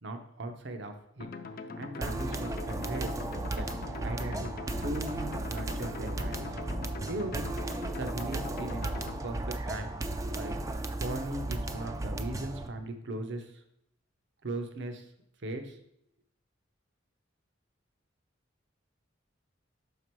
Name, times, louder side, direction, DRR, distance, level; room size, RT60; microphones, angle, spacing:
voice 1, 0.0-1.3 1.8-3.2 3.5-3.7 4.0-4.5 4.8-6.5 7.1-8.9 9.2-9.9 10.3-10.6 11.0-13.6 14.4-15.0 15.4-15.8, right 1 dB, 65° right, 6 dB, 0.8 m, -38 dB
sound 1, 1.2-9.2, left 3 dB, 50° left, 0.5 m, -42 dB
sound 2, 2.0-12.7, right 2 dB, 15° right, 0.3 m, -35 dB
6.0 x 4.9 x 4.5 m, 0.74 s
head